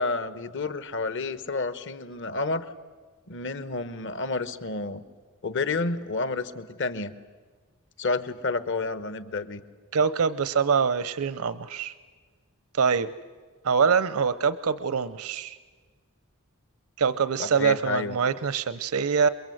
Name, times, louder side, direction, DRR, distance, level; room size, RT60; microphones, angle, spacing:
voice 1, 0.0-2.6 3.3-5.0 5.4-7.1 8.0-9.6 17.4-18.2, left 3 dB, 55° left, 14 dB, 1.2 m, -30 dB
voice 2, 9.9-11.9 12.7-13.1 13.6-15.6 17.0-19.3, right 6 dB, 80° right, 15 dB, 0.7 m, -24 dB
28.5 x 23.0 x 7.9 m, 1.5 s
head